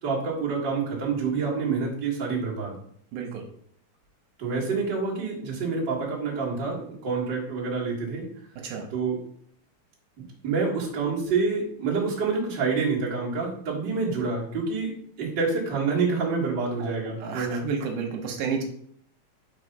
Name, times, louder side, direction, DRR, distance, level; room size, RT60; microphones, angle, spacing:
voice 1, 0.0-2.8 4.4-8.3 8.9-9.2 10.4-17.7, right 4 dB, 45° right, -5 dB, 2.0 m, -27 dB
voice 2, 3.1-3.4 8.6-8.9 16.8-16.9 17.2-18.6, right 5 dB, 85° right, 2 dB, 2.3 m, -31 dB
5.5 x 3.3 x 5.3 m, 0.64 s
omnidirectional pair, 3.5 m